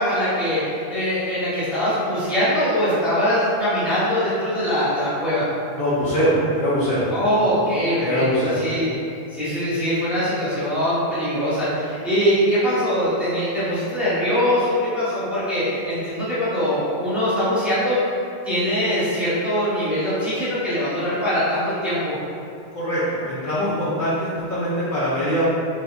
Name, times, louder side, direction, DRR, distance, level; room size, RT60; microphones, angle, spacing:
voice 1, 0.0-5.5 7.1-9.0 9.3-18.0 18.4-22.1, equal, ahead, -12 dB, 0.8 m, -22 dB
voice 2, 5.7-7.0 8.0-8.6 22.7-25.4, equal, 55° left, -11 dB, 0.7 m, -22 dB
4.1 x 2.6 x 2.3 m, 2.6 s
omnidirectional pair, 1.2 m